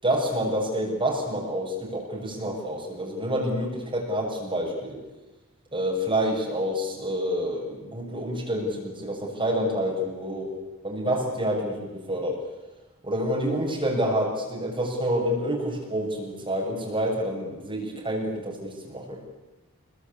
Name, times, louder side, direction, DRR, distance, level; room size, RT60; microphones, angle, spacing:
voice 1, 0.0-5.0 5.7-10.5 10.8-12.4 13.0-19.2, equal, 20° right, -2 dB, 6.6 m, -28 dB
26.5 x 22.5 x 8.5 m, 1.1 s
head